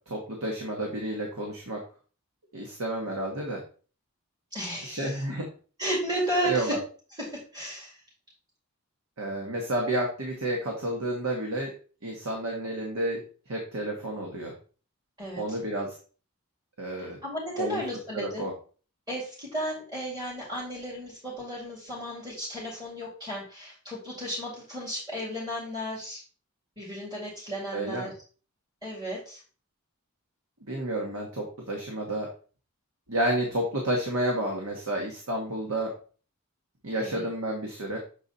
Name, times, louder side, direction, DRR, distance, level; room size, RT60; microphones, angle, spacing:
voice 1, 0.1-1.8 2.5-3.6 4.8-5.4 6.4-6.8 9.2-11.7 12.0-14.5 15.4-16.0 16.8-17.2 17.6-17.8 18.1-18.5 27.7-28.1 30.6-32.3 33.1-35.9 36.8-38.0, right 1 dB, 85° right, 1 dB, 1.3 m, -30 dB
voice 2, 4.5-5.2 5.8-6.7 7.2-8.0 15.2-15.6 17.0-18.5 19.1-26.2 26.8-28.1 28.8-29.4 37.0-37.3, equal, 20° right, -8 dB, 2.5 m, -34 dB
6.9 x 4.0 x 4.1 m, 0.39 s
head